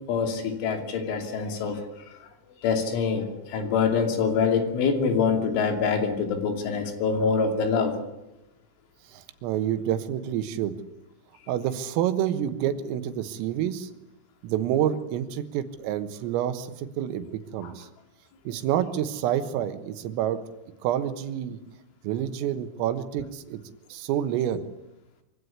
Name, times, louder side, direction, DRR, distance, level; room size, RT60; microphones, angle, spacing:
voice 1, 0.1-1.8 2.6-7.9 17.6-17.7, left 5 dB, 70° left, 6 dB, 5.1 m, -25 dB
voice 2, 9.1-10.8 11.5-13.9 14.4-17.9 18.5-20.4 20.8-21.6 22.0-23.6 23.9-24.6, right 10 dB, 90° right, 11 dB, 4.0 m, -28 dB
24.5 x 16.0 x 9.7 m, 0.93 s
omnidirectional pair, 5.9 m